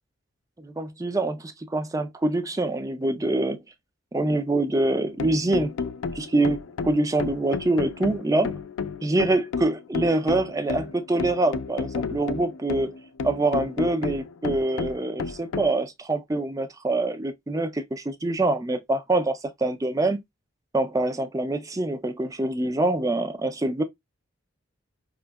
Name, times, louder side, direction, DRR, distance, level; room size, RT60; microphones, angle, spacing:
voice 1, 0.6-3.6 4.1-5.7 6.1-8.5 9.0-12.9 13.2-20.2 20.7-23.8, right 2 dB, 15° right, 0.4 m, -25 dB
sound 1, 4.8-15.7, left 5 dB, 80° left, 0.4 m, -32 dB
4.9 x 2.7 x 2.2 m
head